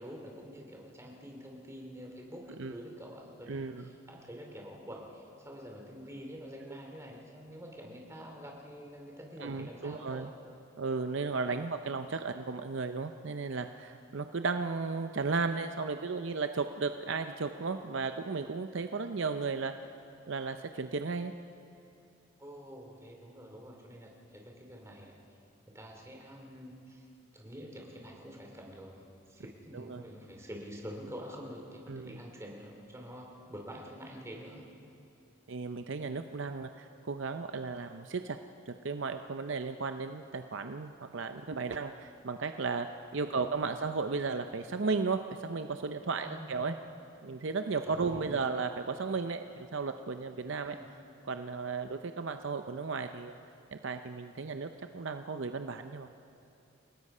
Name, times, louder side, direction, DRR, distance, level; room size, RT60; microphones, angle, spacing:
voice 1, 0.0-10.3 22.4-25.2 25.7-27.0 27.3-29.0 29.3-34.6 43.2-43.5 46.2-46.5 47.9-48.6 50.6-50.9, equal, 15° right, 0 dB, 2.8 m, -47 dB
voice 2, 3.5-3.9 6.7-6.8 9.4-10.3 10.8-19.7 20.3-21.3 29.7-30.0 31.9-32.2 35.5-38.4 38.7-42.9 43.1-46.7 47.2-50.8 51.3-53.4 53.7-56.1, right 4 dB, 60° right, 8 dB, 0.6 m, -35 dB
29.5 x 17.5 x 5.5 m, 2.7 s
head